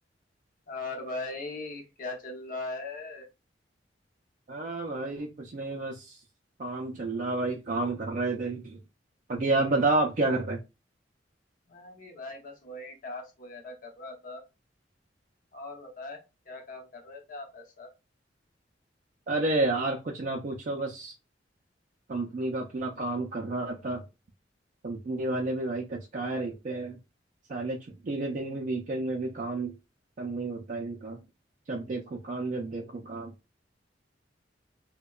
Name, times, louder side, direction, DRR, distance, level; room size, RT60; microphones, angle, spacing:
voice 1, 0.7-3.3 11.7-14.4 15.5-17.9, left 2 dB, 50° left, 0.8 m, -40 dB
voice 2, 4.5-6.2 6.6-8.8 9.3-10.6 19.3-21.1 22.1-24.0 24.8-27.0 27.5-27.8 28.0-29.7 30.2-31.2 31.7-33.3, right 2 dB, 45° right, 0.4 m, -30 dB
2.7 x 2.1 x 2.3 m
head